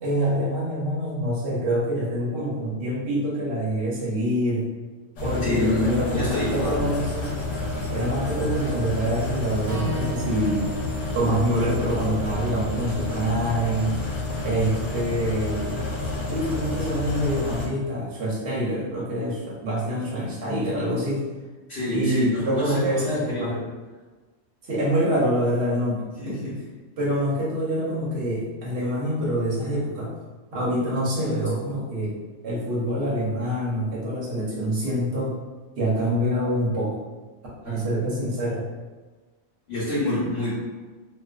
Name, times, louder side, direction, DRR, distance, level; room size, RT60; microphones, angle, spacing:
voice 1, 0.0-4.7 5.2-7.3 7.9-10.6 11.1-14.0 14.4-15.8 16.3-21.2 21.9-23.5 24.6-26.5 27.0-30.1 30.5-32.1 32.4-35.4 35.8-37.0 37.6-38.6, equal, 65° right, -5 dB, 1.0 m, -26 dB
sound 1, 5.2-17.7, left 2 dB, 90° left, 1.0 m, -30 dB
voice 2, 5.4-6.9 21.7-23.6 26.2-26.6 37.6-37.8 39.7-40.5, left 2 dB, 65° left, -10 dB, 1.0 m, -27 dB
Acoustic guitar / Strum, 9.6-13.9, equal, 50° right, 0.5 m, -37 dB
2.4 x 2.4 x 2.3 m, 1.3 s
omnidirectional pair, 1.2 m